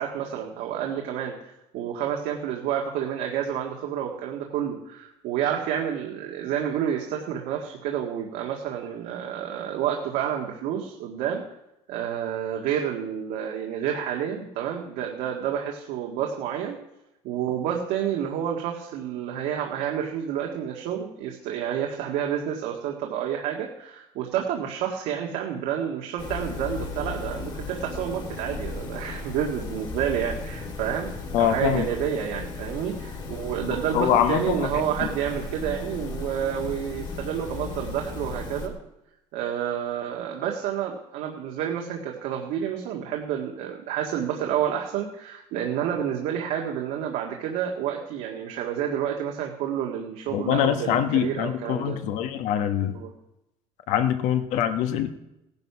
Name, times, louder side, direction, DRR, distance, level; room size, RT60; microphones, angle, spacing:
voice 1, 0.0-1.4 1.7-11.4 11.9-16.8 17.2-31.1 31.4-38.7 39.3-52.0 52.9-53.1, right 9 dB, 90° right, 1 dB, 1.9 m, -29 dB
sound 1, 26.2-38.7, left 3 dB, 35° left, 2.4 m, -36 dB
voice 2, 31.3-31.9 33.6-35.1 50.3-52.9 53.9-55.1, left 9 dB, 75° left, 8 dB, 1.5 m, -24 dB
17.0 x 10.5 x 5.9 m, 0.88 s
cardioid pair, 175°, 13 cm